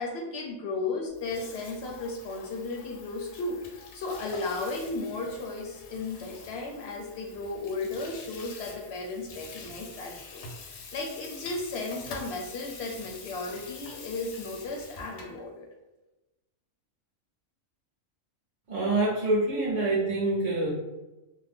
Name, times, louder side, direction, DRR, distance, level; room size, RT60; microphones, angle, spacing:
voice 1, 0.0-15.7, left 3 dB, 65° left, 1 dB, 0.7 m, -35 dB
Water tap faucet / Sink (filling or washing), 1.1-15.4, left 4 dB, 90° left, 1.0 m, -46 dB
voice 2, 18.7-20.7, right 2 dB, 45° right, -7 dB, 0.5 m, -26 dB
2.6 x 2.0 x 3.4 m, 1.0 s
omnidirectional pair, 1.4 m